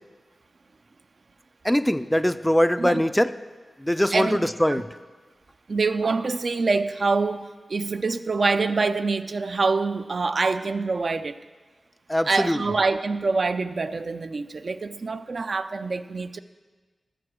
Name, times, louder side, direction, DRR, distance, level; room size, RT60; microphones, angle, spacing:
voice 1, 1.6-3.3 3.8-4.9 12.1-12.6, equal, 5° left, 12 dB, 0.3 m, -22 dB
voice 2, 4.1-4.4 4.7-4.8 5.7-11.4 12.3-16.4, right 4 dB, 55° right, 10 dB, 0.4 m, -25 dB
14.5 x 5.9 x 6.4 m, 1.4 s
wide cardioid pair, 80°, 0 cm